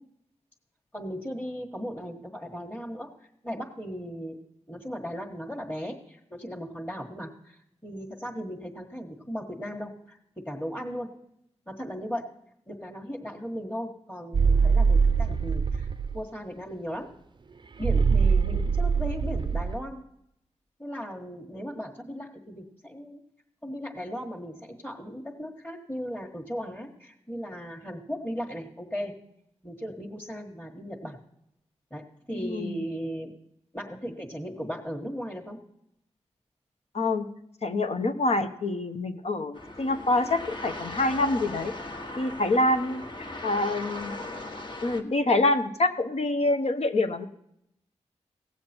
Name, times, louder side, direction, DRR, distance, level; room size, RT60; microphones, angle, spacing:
voice 1, 0.9-3.1 3.4-4.4 4.7-11.1 11.7-12.2 12.7-17.1 17.8-20.0 20.8-23.2 23.6-29.1 29.6-31.2 31.9-33.3 33.7-35.6, equal, 10° left, -3 dB, 1.5 m, -37 dB
sound 1, 14.3-16.2 17.8-19.8, right 5 dB, 40° right, 0.5 m, -23 dB
voice 2, 32.3-32.8 36.9-37.3 37.6-41.7 42.2-44.1 44.8-47.2, left 2 dB, 60° left, 7 dB, 1.0 m, -26 dB
sound 2, 39.5-45.0, left 2 dB, 45° left, 1.4 m, -38 dB
17.5 x 7.4 x 4.4 m, 0.78 s
cardioid pair, 65°, 12 cm